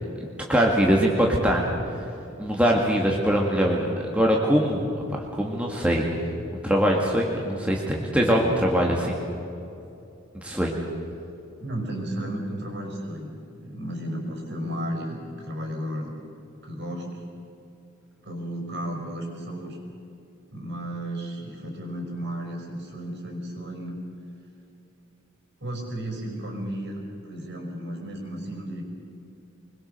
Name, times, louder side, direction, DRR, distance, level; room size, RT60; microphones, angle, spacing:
voice 1, 0.5-1.6 2.4-6.0 6.6-9.3 10.3-10.8, equal, 5° right, -1 dB, 1.9 m, -22 dB
voice 2, 11.6-13.3 13.6-16.1 16.6-17.2 18.2-19.8 20.5-24.0 25.6-28.8, right 1 dB, 50° right, 2 dB, 5.2 m, -33 dB
25.0 x 21.5 x 6.7 m, 2.8 s
head